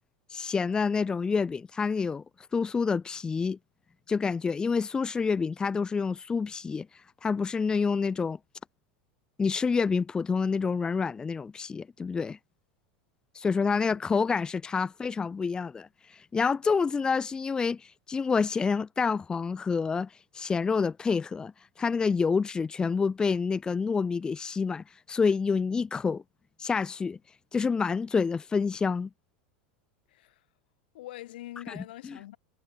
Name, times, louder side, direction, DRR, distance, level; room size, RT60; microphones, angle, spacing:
voice 1, 0.3-2.2 2.5-3.6 4.1-6.9 7.2-8.4 9.4-12.4 13.3-21.5 21.8-26.2 26.6-27.2 27.5-29.1 31.7-31.8 32.1-32.2, left 5 dB, 15° left, 0.7 m, -28 dB
voice 2, 13.7-14.0 30.1-30.5 30.9-32.4, left 15 dB, 80° left, 7.6 m, -44 dB
supercardioid pair, 130°, 5 cm